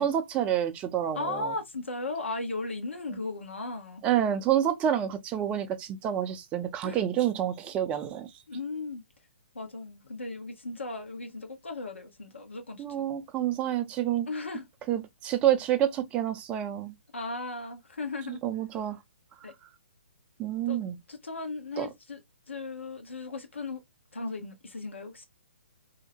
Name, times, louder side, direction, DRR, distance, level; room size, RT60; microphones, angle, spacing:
voice 1, 0.0-1.5 4.0-8.3 12.8-14.3 14.9-16.9 18.3-19.0 20.4-21.0 21.8-21.9, right 10 dB, 20° right, 0.4 m, -28 dB
voice 2, 1.1-4.0 6.8-7.0 8.5-9.0 9.5-13.1 14.3-14.6 17.1-18.4 19.4-19.5 20.7-20.8 21.1-22.2 22.5-23.8 24.1-25.2, left 3 dB, 80° left, 0.9 m, -36 dB
2.7 x 2.0 x 2.7 m
figure-of-eight pair, 130°, 6 cm